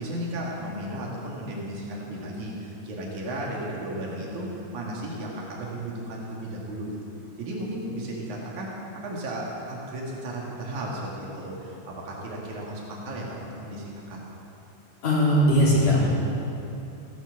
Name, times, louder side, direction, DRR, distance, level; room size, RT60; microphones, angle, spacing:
voice 1, 0.0-7.0 7.4-14.2, right 1 dB, 80° right, -4 dB, 3.8 m, -34 dB
voice 2, 15.0-16.1, equal, 60° left, -7 dB, 4.6 m, -19 dB
16.5 x 11.0 x 7.2 m, 2.9 s
omnidirectional pair, 3.4 m